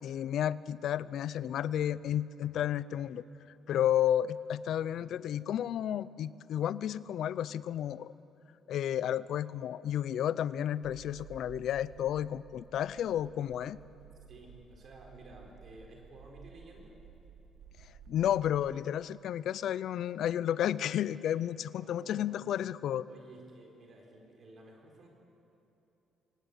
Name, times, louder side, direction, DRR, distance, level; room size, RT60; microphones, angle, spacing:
voice 1, 0.0-3.2 3.7-8.1 8.7-13.8 18.1-23.1, left 10 dB, 55° left, 18 dB, 0.5 m, -32 dB
sound 1, 10.8-18.6, right 8 dB, 80° right, 1.1 m, -54 dB
voice 2, 14.3-17.0 21.8-22.5 23.1-25.1, right 2 dB, 40° right, 1 dB, 4.2 m, -53 dB
24.0 x 19.0 x 8.2 m, 3.0 s
cardioid pair, 170°, 0 cm